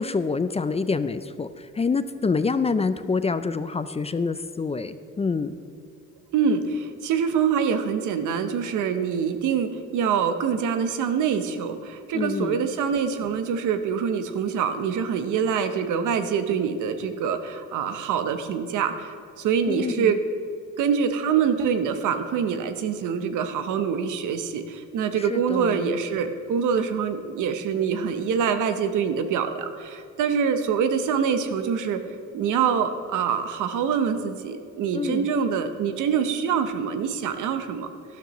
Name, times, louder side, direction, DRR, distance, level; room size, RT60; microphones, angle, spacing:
voice 1, 0.0-5.6 12.1-12.6 19.7-20.1 25.2-25.8 34.9-35.3, left 4 dB, 20° left, 12 dB, 0.4 m, -26 dB
voice 2, 6.3-20.2 20.8-32.0 32.3-37.9, right 7 dB, 80° right, 9 dB, 0.9 m, -25 dB
12.5 x 12.5 x 3.1 m, 2.4 s
cardioid pair, 90°, 30 cm